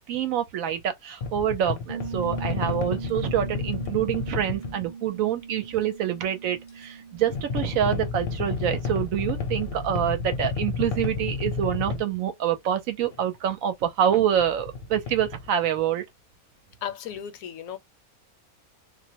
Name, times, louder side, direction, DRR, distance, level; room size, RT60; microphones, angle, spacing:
voice 1, 0.1-16.0, right 10 dB, 75° right, 1.0 m, -26 dB
sound 1, 1.2-4.9 7.3-12.0 13.0-13.2 14.3-15.5, left 5 dB, 50° left, 0.7 m, -31 dB
Piano, 1.9-10.4, right 6 dB, 50° right, 0.6 m, -41 dB
voice 2, 16.8-17.8, left 9 dB, 75° left, 1.0 m, -35 dB
2.5 x 2.1 x 2.8 m
omnidirectional pair, 1.5 m